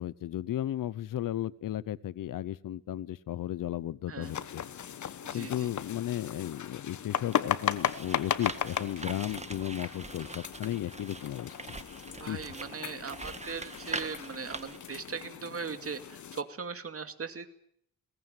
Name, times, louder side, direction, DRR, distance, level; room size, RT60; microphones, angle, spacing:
voice 1, 0.0-4.6 5.3-11.5 12.3-12.4, left 12 dB, 80° left, 20 dB, 0.9 m, -34 dB
voice 2, 4.1-4.5 5.2-5.7 12.2-17.5, right 5 dB, 45° right, 9 dB, 2.4 m, -39 dB
sound 1, 4.2-16.4, left 9 dB, 65° left, 1.3 m, -36 dB
sound 2, 7.2-15.0, right 3 dB, 20° right, 1.7 m, -43 dB
21.0 x 19.0 x 9.2 m, 0.70 s
cardioid pair, 90°, 32 cm